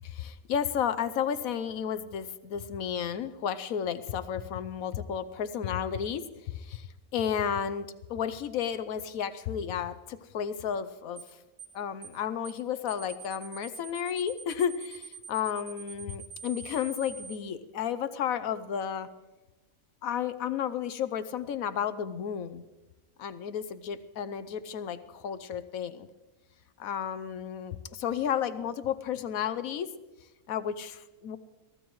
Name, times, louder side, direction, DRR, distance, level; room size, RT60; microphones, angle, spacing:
voice 1, 0.0-11.2 11.7-19.1 20.0-22.6 23.2-26.1 26.8-29.9 30.5-31.4, left 8 dB, 75° left, 13 dB, 1.1 m, -32 dB
sound 1, 11.2-11.3 11.6-11.8 12.0-12.2 12.4-12.6 12.9-17.4, right 6 dB, 60° right, 1.5 m, -44 dB
23.0 x 15.0 x 3.1 m, 1.1 s
omnidirectional pair, 1.5 m